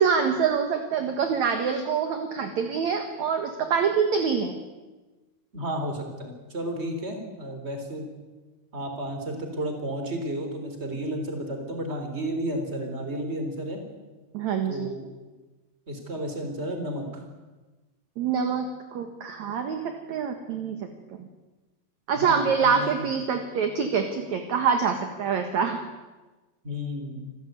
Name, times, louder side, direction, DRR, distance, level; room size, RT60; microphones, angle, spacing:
voice 1, 0.0-4.5 14.3-14.9 18.2-20.8 21.2-21.3 22.1-25.8, right 6 dB, 55° right, 6 dB, 2.4 m, -25 dB
voice 2, 5.5-8.1 8.7-13.8 14.7-15.1 15.9-17.2 22.1-23.0 26.6-27.3, right 1 dB, 15° right, 4 dB, 3.8 m, -32 dB
27.5 x 14.0 x 9.5 m, 1.2 s
omnidirectional pair, 4.6 m